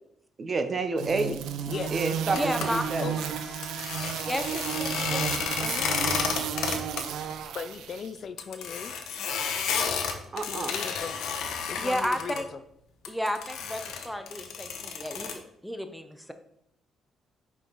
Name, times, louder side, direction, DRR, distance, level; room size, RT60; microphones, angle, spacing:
voice 1, 0.4-1.3 1.9-3.1 10.3-10.8, right 3 dB, 40° right, 8 dB, 0.7 m, -29 dB
sound 1, 1.0-8.1, right 8 dB, 85° right, 0.5 m, -33 dB
Wind instrument woodwind instrument, 1.4-5.0, left 1 dB, 30° left, 1.6 m, -48 dB
sound 2, 2.3-2.7 3.6-7.0 7.3-7.4 7.7-7.8 8.4-12.4 13.0-15.4, left 6 dB, 85° left, 0.9 m, -31 dB
voice 2, 2.3-2.8 4.3-5.9 11.8-12.4 13.1-16.3, equal, ahead, 8 dB, 0.7 m, -33 dB
voice 3, 7.5-8.9 10.5-11.3 11.7-12.6, left 6 dB, 55° left, 12 dB, 0.4 m, -37 dB
5.7 x 4.6 x 4.0 m, 0.75 s
cardioid pair, 90°, 0 cm